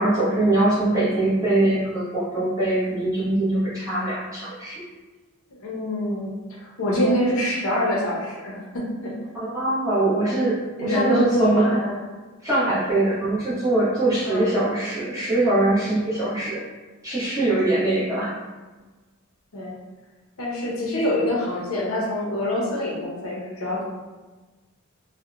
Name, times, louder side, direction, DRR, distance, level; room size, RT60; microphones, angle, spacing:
voice 1, 0.0-4.8 6.9-7.1 9.3-11.7 12.4-16.6 17.0-18.3, right 2 dB, 15° right, -11 dB, 0.9 m, -22 dB
voice 2, 5.6-9.1 10.8-11.9 14.2-14.5 19.5-19.7 20.4-23.8, left 1 dB, 65° left, -3 dB, 0.5 m, -25 dB
2.8 x 2.0 x 2.3 m, 1.3 s
head